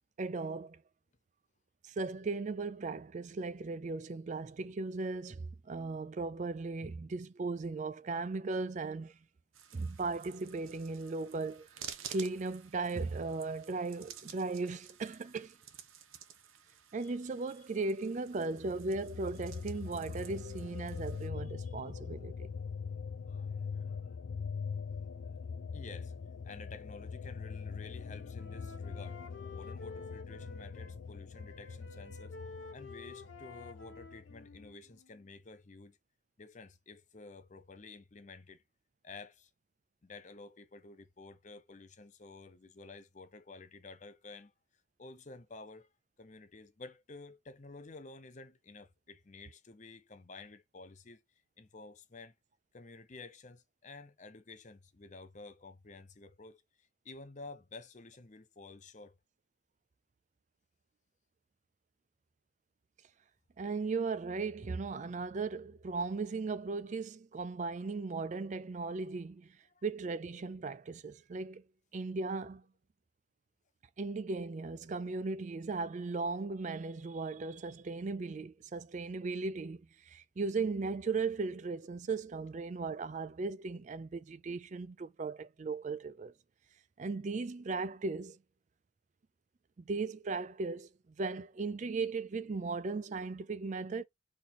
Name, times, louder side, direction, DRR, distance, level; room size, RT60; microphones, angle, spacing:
voice 1, 0.2-0.8 1.8-9.2 9.7-11.7 12.1-15.6 16.9-22.5 63.6-69.6 69.8-71.6 71.9-72.6 74.0-86.3 87.0-88.4 89.9-90.9 91.2-94.0, right 3 dB, 35° right, 0.4 m, -37 dB
sound 1, 9.5-21.3, right 9 dB, 85° right, 0.9 m, -52 dB
sound 2, 18.6-34.7, left 5 dB, 85° left, 0.5 m, -42 dB
voice 2, 21.4-21.9 22.7-22.8 23.3-24.2 25.0-25.3 25.7-26.2 26.4-29.2 29.5-32.4 32.7-36.0 36.4-38.6 39.0-39.5 40.0-44.5 45.0-45.9 46.2-52.3 52.7-59.2 69.7-69.8, left 3 dB, 35° left, 0.6 m, -52 dB
Wind instrument woodwind instrument, 27.5-31.0 31.3-35.3, left 3 dB, 65° left, 1.0 m, -51 dB
4.3 x 3.0 x 3.9 m
head